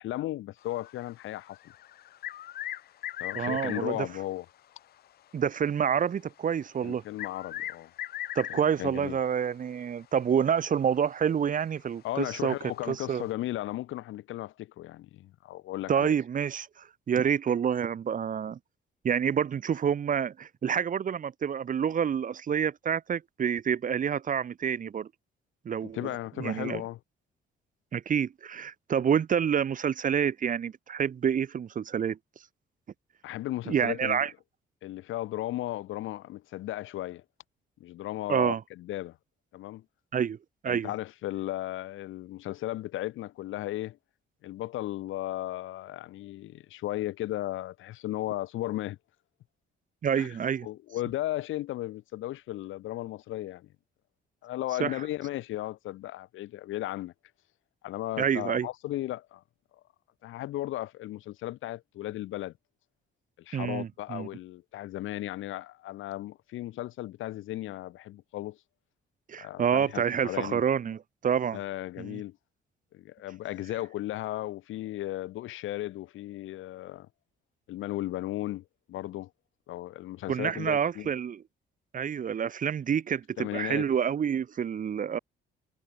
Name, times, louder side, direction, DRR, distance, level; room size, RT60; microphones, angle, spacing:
voice 1, 0.0-1.6 3.2-4.5 6.8-7.9 8.5-9.2 12.0-16.1 25.9-27.0 33.2-34.3 34.8-37.2 37.8-39.2 39.5-39.8 40.7-44.0 44.4-49.0 50.1-50.3 50.6-53.7 54.4-57.1 57.8-59.4 60.2-62.5 63.4-68.6 69.4-70.6 71.5-72.4 72.9-77.1 77.7-79.3 79.7-81.1 83.4-83.9, left 15 dB, 85° left, 2.0 m, -35 dB
sound 1, 0.6-4.0 6.4-6.5 7.2-8.9 10.5-10.6 11.0-11.1 12.8-12.9, left 12 dB, 55° left, 0.4 m, -38 dB
voice 2, 3.3-4.1 5.3-7.0 8.4-12.5 12.9-13.2 15.9-18.6 19.0-25.1 25.7-26.1 26.4-26.8 27.9-32.2 33.7-34.3 38.3-38.6 40.1-40.4 40.6-40.9 50.0-50.7 54.8-55.0 58.2-58.7 63.5-64.3 69.3-71.6 72.0-72.2 80.3-81.4 81.9-85.2, right 8 dB, 40° right, 0.7 m, -28 dB
cardioid pair, 90°, 20 cm